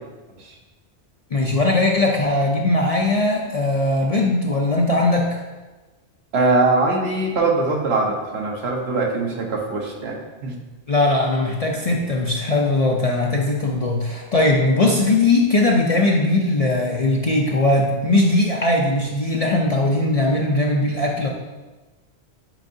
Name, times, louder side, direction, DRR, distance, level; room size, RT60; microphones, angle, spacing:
voice 1, 1.3-5.4 10.9-21.3, left 2 dB, 45° left, -1 dB, 0.5 m, -19 dB
voice 2, 6.3-10.6, right 3 dB, 65° right, 0 dB, 1.2 m, -22 dB
8.8 x 4.7 x 2.7 m, 1.2 s
omnidirectional pair, 1.1 m